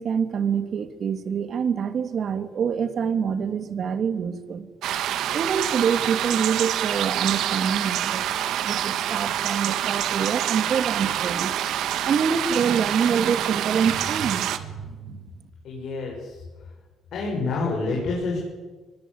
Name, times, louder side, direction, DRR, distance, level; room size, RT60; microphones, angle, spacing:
voice 1, 0.0-4.7 5.3-8.2 8.6-15.2, right 7 dB, 60° right, 10 dB, 2.5 m, -26 dB
sound 1, 4.8-14.6, right 11 dB, 85° right, 1.7 m, -26 dB
voice 2, 15.6-16.4 17.1-18.4, left 3 dB, 70° left, -2 dB, 7.3 m, -28 dB
24.0 x 21.0 x 8.8 m, 1.4 s
cardioid pair, 90°, 0 cm